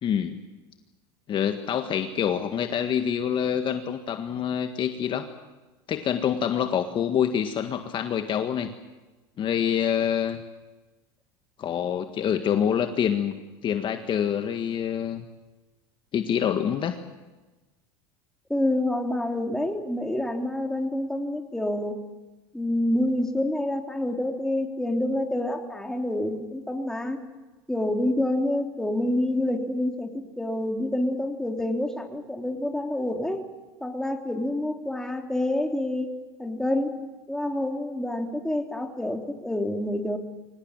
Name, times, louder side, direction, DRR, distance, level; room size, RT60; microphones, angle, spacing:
voice 1, 0.0-0.4 1.3-5.3 5.9-8.7 9.4-10.4 11.6-13.3 13.6-15.2 16.1-17.0, left 8 dB, 40° left, 7 dB, 1.7 m, -26 dB
voice 2, 18.5-22.0 22.5-27.2 27.7-33.5 33.8-36.1 36.4-37.0 37.3-40.2, left 1 dB, 5° left, 3 dB, 3.3 m, -27 dB
24.5 x 18.5 x 9.0 m, 1.1 s
supercardioid pair, 100°, 13 cm